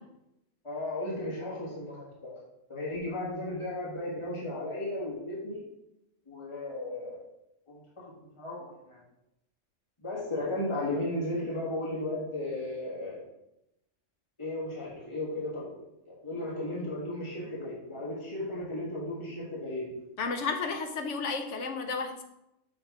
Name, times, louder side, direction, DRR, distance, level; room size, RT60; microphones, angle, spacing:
voice 1, 0.6-2.3 2.7-5.6 6.3-7.2 7.7-8.0 8.4-9.0 10.0-13.2 14.4-15.8 16.0-19.9, left 1 dB, 25° left, -6 dB, 1.5 m, -35 dB
voice 2, 20.2-22.2, left 4 dB, 70° left, 6 dB, 1.0 m, -32 dB
6.5 x 3.2 x 4.6 m, 0.86 s
omnidirectional pair, 1.3 m